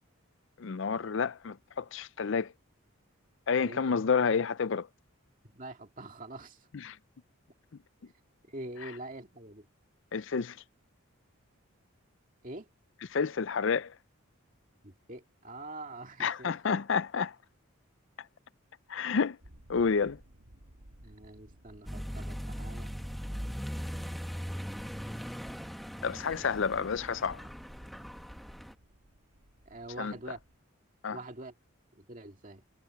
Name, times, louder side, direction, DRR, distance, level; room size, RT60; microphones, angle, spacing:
voice 1, 0.6-2.5 3.5-4.9 6.7-7.0 10.1-10.6 13.1-13.9 16.2-17.4 18.9-19.4 19.7-20.2 26.0-27.4 30.0-30.1 31.0-31.2, left 5 dB, 60° left, 0.5 m, -29 dB
voice 2, 5.5-6.7 8.0-8.1 8.5-9.7 12.4-12.7 14.8-16.6 21.0-23.0 29.7-30.4 31.1-31.5 31.9-32.6, right 2 dB, 35° right, 2.1 m, -45 dB
sound 1, 19.4-30.6, right 1 dB, 75° right, 2.3 m, -56 dB
Accelerating revving vroom, 21.9-28.7, equal, ahead, 1.0 m, -40 dB
head